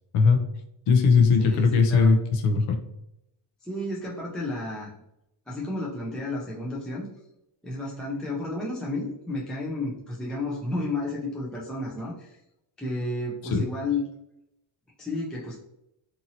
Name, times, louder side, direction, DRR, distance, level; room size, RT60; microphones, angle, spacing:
voice 1, 0.9-2.8 13.5-13.6, left 5 dB, 80° left, 5 dB, 0.7 m, -19 dB
voice 2, 1.4-2.1 3.6-4.9 5.5-7.1 7.6-12.4 12.8-14.0 15.0-15.6, left 2 dB, ahead, -5 dB, 0.4 m, -32 dB
2.8 x 2.7 x 2.7 m, 0.83 s
cardioid pair, 120°, 50 cm